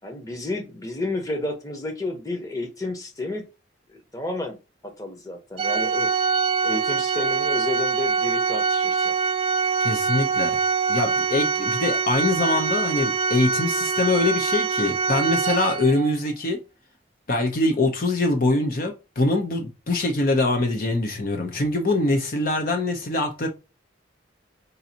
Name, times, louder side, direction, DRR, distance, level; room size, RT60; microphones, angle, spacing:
voice 1, 0.0-3.4 3.9-4.6 5.0-6.1 6.6-9.1, left 2 dB, 20° left, 1.0 m, -31 dB
Organ, 5.6-16.2, right 5 dB, 30° right, 0.3 m, -24 dB
voice 2, 9.8-10.6 10.9-16.6 17.3-23.5, left 2 dB, 50° left, 0.7 m, -23 dB
5.4 x 2.6 x 2.8 m
head